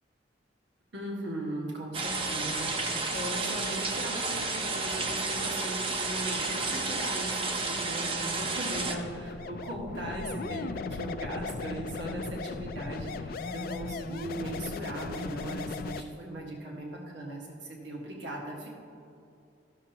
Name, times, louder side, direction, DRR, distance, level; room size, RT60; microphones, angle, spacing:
voice 1, 0.9-18.7, right 1 dB, 80° right, -1 dB, 1.4 m, -38 dB
sound 1, 1.9-8.9, right 3 dB, 30° right, 0.6 m, -31 dB
sound 2, 8.7-16.0, left 4 dB, 50° left, 0.3 m, -37 dB
13.5 x 6.7 x 2.9 m, 2.6 s
head